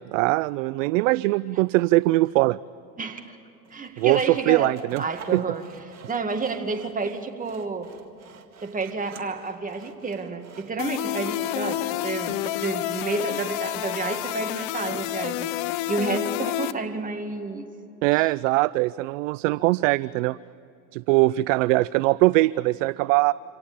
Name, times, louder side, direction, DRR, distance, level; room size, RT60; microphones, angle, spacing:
voice 1, 0.1-2.6 4.0-5.0 5.3-5.4 18.0-20.4 20.9-23.3, right 20 dB, 55° right, 20 dB, 0.5 m, -21 dB
voice 2, 3.0-3.4 3.7-5.6 6.1-7.9 8.6-15.5 15.9-17.7 18.1-18.3, right 4 dB, 15° right, 5 dB, 2.0 m, -30 dB
Sawing, 3.6-16.1, right 7 dB, 30° right, 2.1 m, -49 dB
sound 1, 10.8-16.7, left 15 dB, 50° left, 0.9 m, -29 dB
26.0 x 18.0 x 8.6 m, 2.8 s
hypercardioid pair, 95°, 49 cm